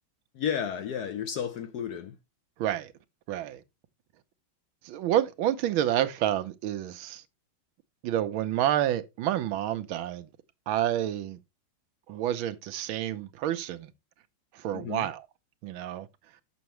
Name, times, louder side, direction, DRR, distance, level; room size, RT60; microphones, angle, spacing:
voice 1, 0.3-2.2 14.7-15.1, left 8 dB, 65° left, 1.0 m, -32 dB
voice 2, 2.6-2.9 3.3-3.6 4.8-7.2 8.0-10.3 10.7-11.4 12.1-13.9 14.5-15.2 15.6-16.1, right 12 dB, 90° right, 1.5 m, -29 dB
6.9 x 6.2 x 3.0 m
omnidirectional pair, 2.2 m